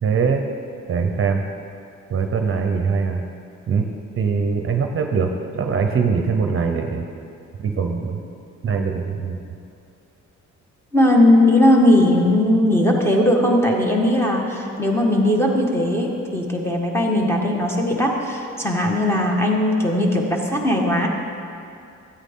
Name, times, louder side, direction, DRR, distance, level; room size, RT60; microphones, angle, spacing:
voice 1, 0.0-0.5 0.9-1.4 2.1-3.2 3.7-3.9 4.2-5.3 5.5-7.0 7.6-8.2 8.6-9.4, right 5 dB, 45° right, 4 dB, 0.8 m, -22 dB
voice 2, 10.9-21.1, left 1 dB, 10° left, -2 dB, 1.6 m, -18 dB
13.5 x 9.0 x 3.8 m, 2.6 s
cardioid pair, 90°, 30 cm